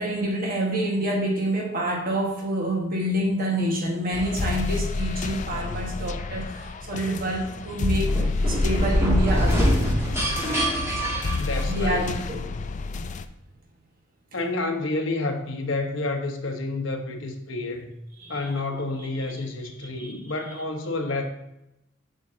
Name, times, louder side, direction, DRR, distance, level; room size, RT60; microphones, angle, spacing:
voice 1, 0.0-10.0 10.8-11.2 11.7-12.4 12.9-13.0 18.2-18.6 19.0-19.1 19.8-20.2, right 1 dB, 50° right, 1 dB, 1.5 m, -28 dB
sound 1, 4.1-13.2, left 3 dB, 40° left, 0.4 m, -29 dB
sound 2, 8.1-12.1, equal, 15° right, 2.2 m, -24 dB
voice 2, 11.4-12.2 14.3-17.9 18.3-21.2, left 2 dB, 70° left, 4 dB, 1.0 m, -29 dB
7.6 x 6.1 x 2.7 m, 0.86 s
head